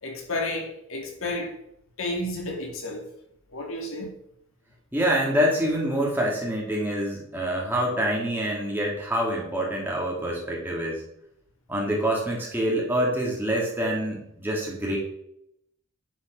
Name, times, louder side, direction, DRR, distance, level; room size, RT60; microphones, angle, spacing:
voice 1, 0.0-1.6 2.0-3.1 3.5-4.1, left 2 dB, 65° left, 2.3 m, -31 dB
voice 2, 4.9-11.0 11.7-15.0, equal, 10° right, 2.8 m, -26 dB
10.0 x 5.7 x 6.2 m
head